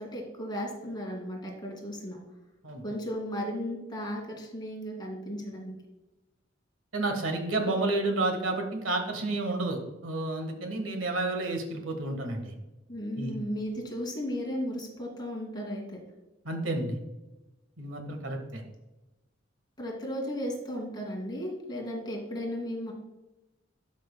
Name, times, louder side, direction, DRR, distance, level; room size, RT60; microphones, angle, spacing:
voice 1, 0.0-2.2 2.8-5.7 12.9-16.0 19.8-22.9, equal, 20° left, -1 dB, 2.1 m, -35 dB
voice 2, 6.9-12.5 13.1-13.3 16.4-17.0 17.8-18.6, right 2 dB, 80° right, 4 dB, 1.4 m, -30 dB
12.0 x 6.1 x 2.2 m, 1.0 s
head